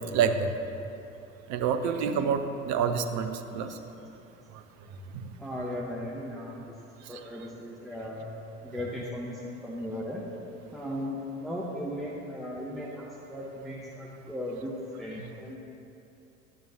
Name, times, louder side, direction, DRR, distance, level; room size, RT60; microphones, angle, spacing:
voice 1, 0.1-0.5 1.5-2.4 2.7-3.3 3.5-3.7, right 7 dB, 45° right, 8 dB, 0.8 m, -26 dB
voice 2, 5.4-6.7 7.1-8.3 8.6-10.2 10.7-15.6, left 1 dB, ahead, -4 dB, 1.1 m, -37 dB
12.0 x 9.4 x 2.9 m, 2.8 s
figure-of-eight pair, 65°, 39 cm